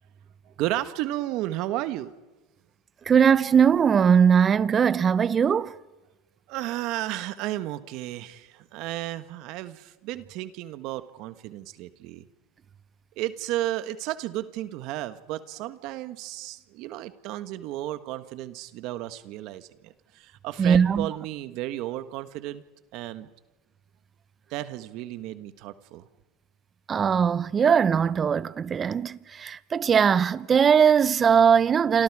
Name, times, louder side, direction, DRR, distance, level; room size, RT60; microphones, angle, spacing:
voice 1, 0.6-2.1 6.5-12.2 13.2-22.6 22.9-23.3 24.5-26.0, right 15 dB, 55° right, 1.3 m, -33 dB
voice 2, 3.1-5.7 20.6-21.1 26.9-32.0, right 7 dB, 25° right, 0.8 m, -20 dB
28.5 x 26.5 x 4.9 m
supercardioid pair, 115°, 0 cm